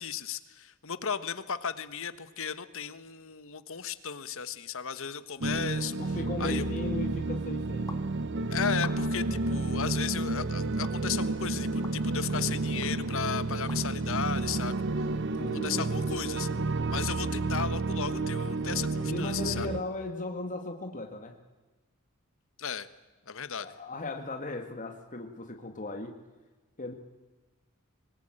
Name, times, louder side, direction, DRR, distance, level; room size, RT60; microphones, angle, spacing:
voice 1, 0.0-6.6 8.5-15.1 15.5-16.5 16.9-19.7 22.6-22.9 23.3-23.7, left 7 dB, 65° left, 13 dB, 1.3 m, -35 dB
sound 1, 5.4-19.8, right 2 dB, 55° right, 1.0 m, -31 dB
voice 2, 6.0-8.0 15.2-16.1 19.0-21.4 23.6-26.2 26.8-26.9, left 2 dB, 35° left, 4 dB, 1.8 m, -37 dB
sound 2, 7.9-8.0 8.7-9.3 9.8-10.0 10.8-10.9 11.8-12.0 12.8-12.9 13.7-13.8, left 3 dB, 15° left, 1.8 m, -46 dB
24.5 x 19.5 x 8.9 m, 1.2 s
head